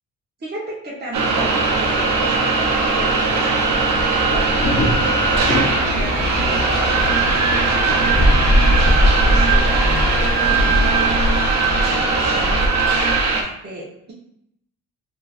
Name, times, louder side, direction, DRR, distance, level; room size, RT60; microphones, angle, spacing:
voice 1, 0.4-8.4 9.2-9.9 10.6-12.7 13.3-14.1, right 1 dB, 35° right, -6 dB, 1.1 m, -34 dB
sound 1, 1.1-13.4, right 3 dB, 65° right, 0.7 m, -19 dB
sound 2, 1.3-11.4, equal, 25° left, 0.9 m, -23 dB
sound 3, 5.8-12.8, left 2 dB, 60° left, 0.9 m, -34 dB
3.6 x 2.7 x 2.5 m, 0.76 s
cardioid pair, 90°, 30 cm